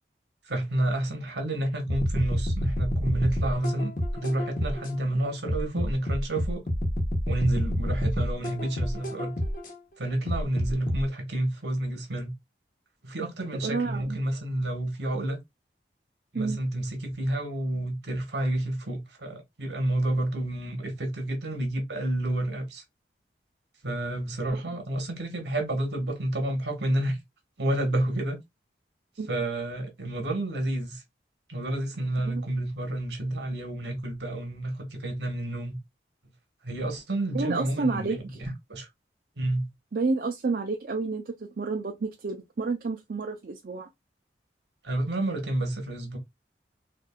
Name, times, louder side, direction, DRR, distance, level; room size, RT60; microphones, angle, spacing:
voice 1, 0.4-6.6 7.3-9.3 10.0-12.3 13.0-15.4 16.3-22.8 23.8-27.2 27.6-28.4 29.3-31.0 31.5-35.8 36.6-38.9 39.4-39.7 44.8-46.2, right 1 dB, 75° right, 1.3 m, -30 dB
sound 1, 1.9-4.9 5.5-9.7 10.3-11.0, equal, 45° left, 1.0 m, -28 dB
voice 2, 13.6-14.2 16.3-16.6 24.5-24.6 29.2-29.3 32.2-32.4 37.3-38.2 39.9-43.9, right 4 dB, 55° right, 0.4 m, -30 dB
4.3 x 2.5 x 2.2 m
head